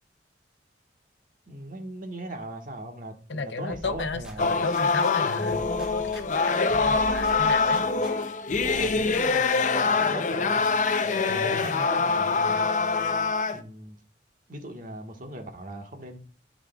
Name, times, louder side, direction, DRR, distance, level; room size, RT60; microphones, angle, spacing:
voice 1, 1.5-4.6 8.6-10.6 11.2-12.7 13.5-14.0 14.5-16.2, right 1 dB, 50° right, 1.5 m, -39 dB
voice 2, 3.3-7.8 11.3-11.7, left 3 dB, 85° left, 0.7 m, -33 dB
sound 1, 3.7-5.1 5.5-8.1 8.5-9.5, equal, 5° right, 1.2 m, -43 dB
sound 2, 4.4-13.6, left 4 dB, 45° left, 0.5 m, -24 dB
12.0 x 5.0 x 2.3 m
head